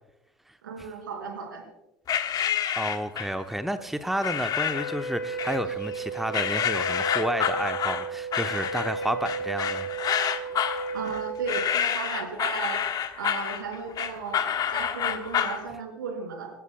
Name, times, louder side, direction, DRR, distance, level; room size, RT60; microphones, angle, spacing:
voice 1, 0.6-1.6 10.9-12.8 13.2-16.5, right 5 dB, 70° right, 2 dB, 4.4 m, -35 dB
sound 1, 2.1-3.4 4.2-5.0 5.4-6.0 6.3-15.6, left 9 dB, 35° left, 1.4 m, -28 dB
voice 2, 2.8-9.9, right 1 dB, ahead, 9 dB, 0.9 m, -31 dB
Wind instrument woodwind instrument, 4.7-11.3, right 3 dB, 75° left, 2.0 m, -34 dB
27.0 x 16.0 x 2.3 m, 0.98 s
figure-of-eight pair, 70°, 11 cm